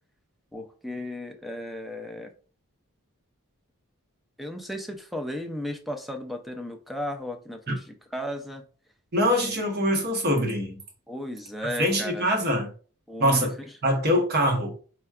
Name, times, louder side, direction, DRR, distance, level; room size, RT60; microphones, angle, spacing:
voice 1, 0.5-2.3 4.4-8.6 9.3-9.6 11.1-12.3 13.1-13.5, left 1 dB, ahead, 0.3 m, -35 dB
voice 2, 9.1-10.8 11.8-12.7 13.2-13.5 13.8-14.7, equal, 45° right, 0.8 m, -23 dB
4.4 x 2.2 x 2.3 m
head